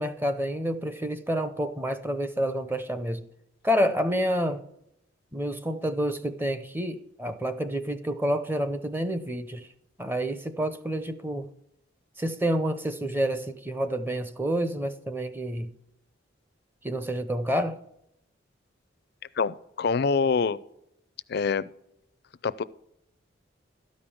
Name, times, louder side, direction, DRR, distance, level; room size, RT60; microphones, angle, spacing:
voice 1, 0.0-3.3 3.6-4.6 5.3-9.7 10.0-11.5 12.2-15.7 16.8-17.8, equal, 10° right, 0.6 m, -28 dB
voice 2, 19.4-20.6 21.3-21.6 22.4-22.6, left 5 dB, 55° left, 0.4 m, -25 dB
13.0 x 5.2 x 7.0 m
head